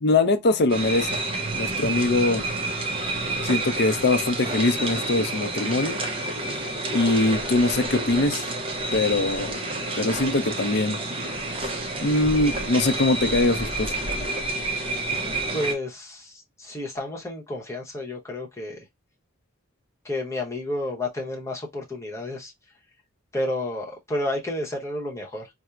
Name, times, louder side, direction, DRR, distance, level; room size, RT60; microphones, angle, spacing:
voice 1, 0.0-1.1 1.6-2.4 3.4-6.0 6.9-8.4 8.9-9.6 10.0-11.0 12.0-13.9, left 2 dB, 50° left, 0.5 m, -22 dB
sound 1, 0.7-15.7, right 2 dB, 25° right, 0.6 m, -29 dB
voice 2, 15.5-18.8 20.0-22.5 23.3-25.5, left 1 dB, 15° left, 0.8 m, -31 dB
4.2 x 2.0 x 2.3 m
head